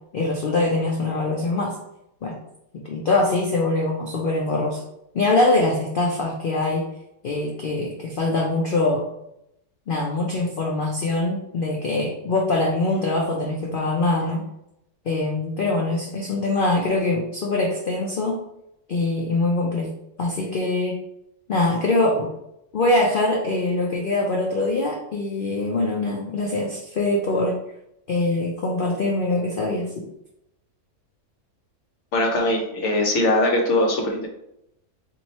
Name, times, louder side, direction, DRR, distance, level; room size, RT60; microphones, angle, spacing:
voice 1, 0.1-1.8 2.2-2.4 2.7-4.8 5.1-6.8 7.2-9.0 9.9-14.4 15.1-18.4 18.9-19.9 20.2-21.0 21.5-22.3 22.7-27.6 28.1-30.1, left 2 dB, 75° left, -1 dB, 0.5 m, -23 dB
voice 2, 32.1-34.3, left 1 dB, 55° left, 1 dB, 1.0 m, -21 dB
3.0 x 2.7 x 4.1 m, 0.80 s
omnidirectional pair, 1.6 m